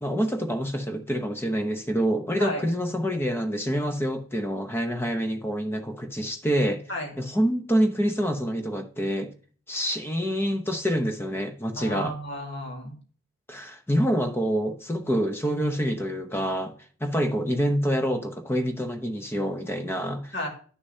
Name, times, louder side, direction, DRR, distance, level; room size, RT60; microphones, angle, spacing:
voice 1, 0.0-6.9 7.2-9.3 9.7-12.1 13.5-16.7 17.0-20.3, equal, 10° left, 0.7 m, -26 dB
voice 2, 11.8-12.9 20.3-20.5, equal, 60° left, 2.1 m, -32 dB
11.0 x 6.6 x 2.8 m
head